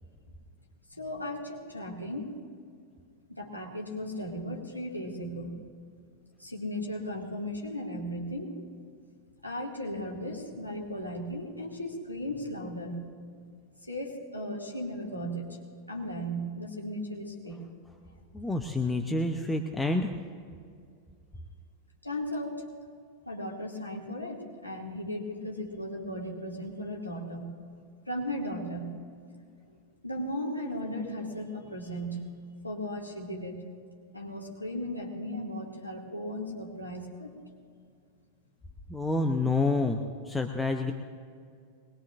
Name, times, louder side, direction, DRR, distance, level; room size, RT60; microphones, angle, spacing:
voice 1, 0.9-2.4 3.3-5.6 6.4-8.6 9.4-13.1 13.8-15.6 15.9-17.6 22.0-22.7 23.3-27.6 28.1-28.9 29.7-29.8 30.0-32.2 32.6-33.6 34.1-37.3, equal, 85° left, -2 dB, 2.4 m, -36 dB
voice 2, 18.3-20.1 38.9-40.0 40.3-40.9, left 2 dB, 10° left, 4 dB, 0.8 m, -28 dB
22.5 x 20.5 x 2.6 m, 2.2 s
figure-of-eight pair, 90°, 0 cm